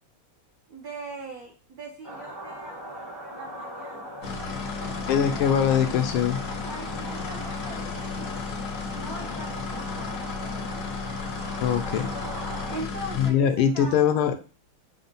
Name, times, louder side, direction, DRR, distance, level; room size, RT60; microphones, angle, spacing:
voice 1, 0.7-4.1 4.8-5.8 6.6-8.4 8.9-10.9 12.6-14.1, right 2 dB, 65° right, -1 dB, 0.9 m, -41 dB
sound 1, 2.0-12.8, right 1 dB, 20° right, 0.5 m, -39 dB
sound 2, 4.2-13.3, left 5 dB, 65° left, 1.0 m, -34 dB
voice 2, 5.1-6.4 11.6-12.1 13.2-14.4, left 8 dB, 80° left, 7 dB, 1.4 m, -22 dB
6.1 x 2.1 x 3.9 m, 0.34 s
omnidirectional pair, 2.4 m